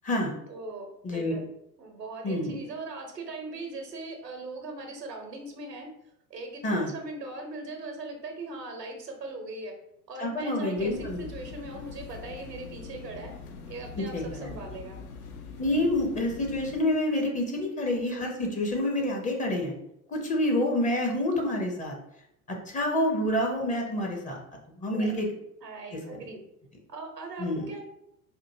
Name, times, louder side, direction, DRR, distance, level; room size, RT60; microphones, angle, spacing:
voice 1, 0.5-1.4 1.8-5.9 6.3-9.7 10.1-13.3 13.7-15.0 24.9-25.2 25.6-26.4 26.9-27.8, right 3 dB, 85° right, 3 dB, 0.9 m, -40 dB
voice 2, 1.0-1.4 2.2-2.5 6.6-6.9 10.2-11.2 14.0-14.5 15.6-19.7 20.1-21.9 22.7-24.4 24.8-25.3 27.4-27.6, left 1 dB, 15° left, 1 dB, 0.6 m, -28 dB
sound 1, 10.7-16.8, left 5 dB, 65° left, 0.7 m, -43 dB
4.4 x 2.5 x 2.6 m, 0.79 s
figure-of-eight pair, 80°, 48 cm